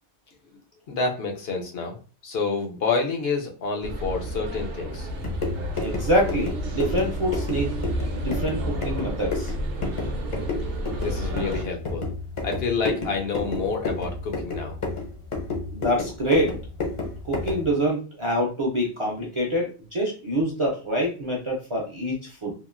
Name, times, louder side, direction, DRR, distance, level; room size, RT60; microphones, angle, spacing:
voice 1, 0.9-2.0 2.2-5.1 11.0-12.1 12.4-14.8, left 4 dB, 65° left, 2 dB, 0.7 m, -28 dB
sound 1, 3.8-11.6, right 1 dB, 60° right, 0.8 m, -31 dB
sound 2, 5.1-17.7, left 3 dB, 40° left, 0.4 m, -31 dB
voice 2, 5.8-7.7 8.1-9.5 15.7-16.6 17.2-22.5, equal, 45° right, -3 dB, 0.4 m, -26 dB
2.8 x 2.4 x 2.4 m, 0.37 s
omnidirectional pair, 1.2 m